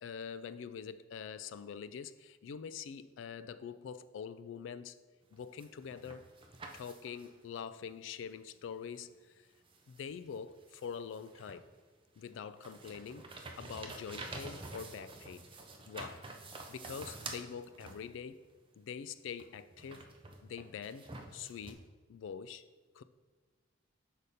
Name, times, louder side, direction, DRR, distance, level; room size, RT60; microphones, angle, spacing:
voice 1, 0.0-5.0 5.3-6.2 6.7-9.5 9.9-11.7 12.2-15.5 15.9-16.2 16.7-18.4 18.8-20.1 20.4-21.8 22.1-22.6 22.9-23.0, left 7 dB, 70° left, 0.3 m, -45 dB
sound 1, 5.3-7.4 8.9-9.0 9.7-11.8 12.2-18.4 19.4-21.7, right 3 dB, 30° right, 0.6 m, -48 dB
6.5 x 5.1 x 4.1 m
head